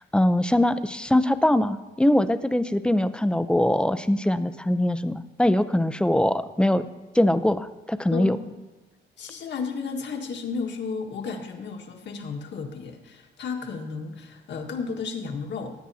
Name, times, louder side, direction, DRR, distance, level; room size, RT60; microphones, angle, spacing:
voice 1, 0.1-6.9 7.1-8.4, left 1 dB, 5° left, 12 dB, 0.6 m, -22 dB
voice 2, 8.1-8.6 9.2-15.7, left 4 dB, 65° left, 3 dB, 1.7 m, -33 dB
19.5 x 9.0 x 2.8 m, 1.2 s
cardioid pair, 90°, 20 cm